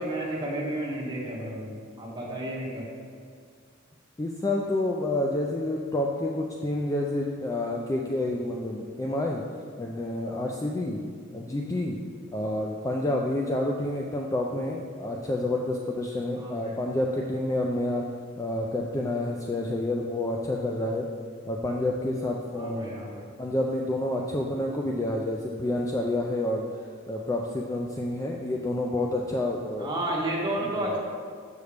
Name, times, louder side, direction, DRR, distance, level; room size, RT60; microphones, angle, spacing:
voice 1, 0.0-2.8 16.3-16.7 22.5-23.2 29.8-31.0, right 1 dB, 20° right, -6 dB, 1.5 m, -31 dB
voice 2, 4.2-9.4 9.8-11.0 11.3-12.0 12.3-18.0 18.4-21.1 21.5-22.9 23.4-26.6 27.1-29.9, left 1 dB, 15° left, 0 dB, 0.3 m, -29 dB
6.8 x 6.4 x 3.4 m, 2.1 s
head